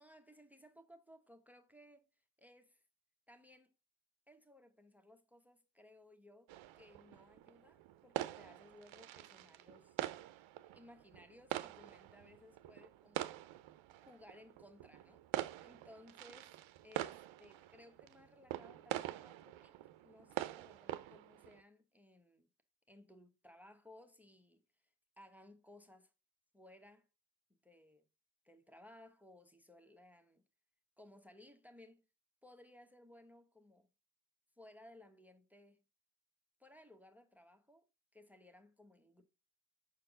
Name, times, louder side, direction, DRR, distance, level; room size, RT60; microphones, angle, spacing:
voice 1, 0.0-2.1 2.4-2.8 3.3-3.7 4.3-10.0 10.7-13.3 14.0-15.2 15.6-16.5 16.8-22.5 22.9-24.6 25.2-26.1 26.5-27.1 27.6-28.0 28.4-30.4 31.0-32.0 32.4-33.9 34.6-35.8 36.6-37.8 38.1-39.2, left 1 dB, 5° right, 1.0 m, -61 dB
sound 1, 6.5-21.6, right 14 dB, 75° right, 0.6 m, -45 dB
6.2 x 4.5 x 3.7 m
cardioid pair, 65°, 48 cm